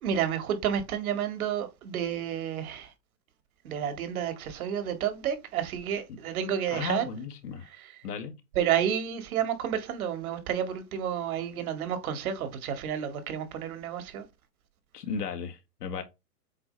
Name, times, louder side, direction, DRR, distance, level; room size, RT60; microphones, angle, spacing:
voice 1, 0.0-2.9 3.6-7.1 7.7-7.9 8.6-14.2, right 9 dB, 60° right, 2.1 m, -30 dB
voice 2, 6.7-7.7 8.0-8.4 14.9-16.0, left 5 dB, 75° left, 1.7 m, -35 dB
7.8 x 3.0 x 4.3 m
hypercardioid pair, 140°, 48 cm